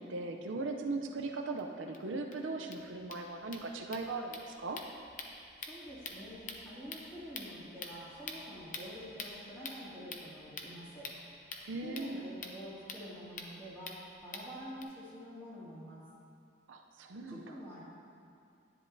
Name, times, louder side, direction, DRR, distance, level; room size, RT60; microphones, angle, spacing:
voice 1, 0.0-4.8 11.6-12.2 16.7-17.5, right 3 dB, 75° right, 3 dB, 0.6 m, -39 dB
sound 1, 1.6-1.7 1.9-2.0 2.3-2.4 2.6-14.8, left 4 dB, 45° left, 0.7 m, -47 dB
voice 2, 5.7-11.1 11.8-13.9 14.2-16.0 17.3-17.9, equal, 15° left, -9 dB, 2.3 m, -47 dB
10.0 x 10.0 x 2.7 m, 2.4 s
head